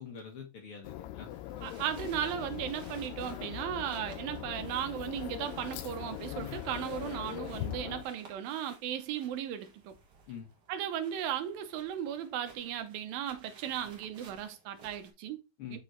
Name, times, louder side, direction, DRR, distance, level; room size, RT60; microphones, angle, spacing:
voice 1, 0.0-1.7 10.3-10.5 15.6-15.8, left 7 dB, 65° left, 1.4 m, -46 dB
sound 1, 0.8-8.0, left 14 dB, 85° left, 2.2 m, -41 dB
sound 2, 1.3-15.1, right 4 dB, 55° right, 1.1 m, -58 dB
voice 2, 1.6-10.0 10.7-15.4 15.7-15.8, right 10 dB, 80° right, 2.6 m, -36 dB
6.6 x 6.1 x 3.2 m
omnidirectional pair, 4.2 m